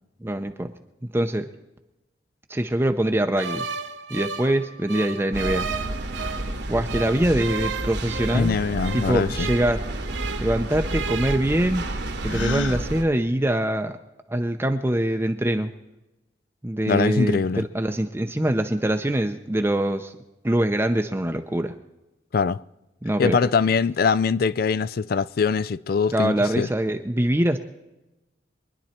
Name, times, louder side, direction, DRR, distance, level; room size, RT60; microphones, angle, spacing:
voice 1, 0.2-0.7 1.1-1.5 2.5-3.6 4.1-5.7 6.7-8.6 8.9-9.8 10.4-11.8 12.2-14.0 14.3-15.7 16.6-20.1 20.4-21.7 23.0-23.4 26.1-27.6, right 1 dB, 10° right, 0.6 m, -23 dB
sound 1, 3.4-6.5 6.9-10.6 10.8-11.4, right 5 dB, 80° right, 1.1 m, -33 dB
sound 2, 5.3-13.0, right 1 dB, 60° right, 1.4 m, -30 dB
voice 2, 8.3-9.5 16.9-17.6 22.3-22.6 23.2-26.7, left 5 dB, 50° left, 0.4 m, -22 dB
Gasp, 12.3-12.8, left 2 dB, 80° left, 0.7 m, -29 dB
23.5 x 10.5 x 4.4 m
head